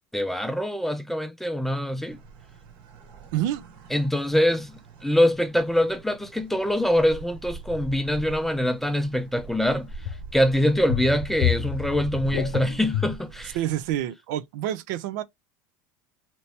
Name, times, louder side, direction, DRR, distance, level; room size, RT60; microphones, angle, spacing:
voice 1, 0.1-2.2 3.9-4.7 5.0-9.9 10.3-13.6, left 1 dB, 5° left, 0.5 m, -24 dB
sound 1, 2.0-14.0, right 4 dB, 55° right, 1.5 m, -43 dB
voice 2, 3.3-3.6 13.5-15.2, right 12 dB, 70° right, 0.5 m, -28 dB
sound 2, 7.7-7.8 10.0-10.3 10.6-13.1, left 11 dB, 75° left, 0.8 m, -29 dB
3.0 x 2.6 x 3.3 m
supercardioid pair, 105°, 10 cm